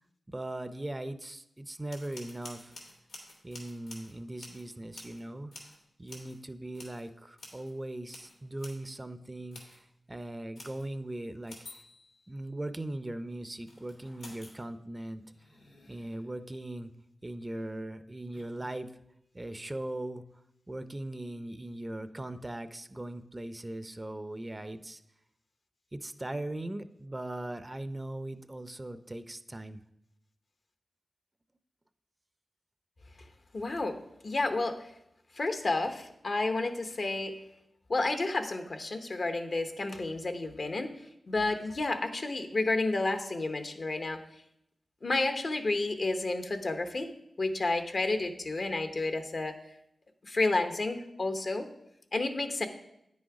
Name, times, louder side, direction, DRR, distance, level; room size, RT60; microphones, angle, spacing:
voice 1, 0.3-2.7 3.4-5.5 6.0-11.8 12.3-15.2 15.9-16.9 17.2-18.9 19.3-20.2 20.7-25.0 25.9-29.8, right 1 dB, 25° right, 11 dB, 0.5 m, -39 dB
sound 1, 1.9-5.3 5.5-5.8 6.1-6.4 6.7-7.1 7.4-7.7 8.0-9.0 9.5-9.8 10.6-10.9 11.5-12.5 13.6-14.7 15.0-16.4 17.4-17.7 18.3-18.8, left 2 dB, 90° left, 2.7 m, -51 dB
voice 2, 33.5-34.9 35.4-37.4 37.9-40.9 41.3-44.2 45.0-47.1 47.4-49.5 50.2-51.7 52.1-52.7, left 2 dB, 60° left, 7 dB, 0.9 m, -31 dB
9.4 x 6.3 x 4.8 m, 0.81 s
cardioid pair, 55°, 0 cm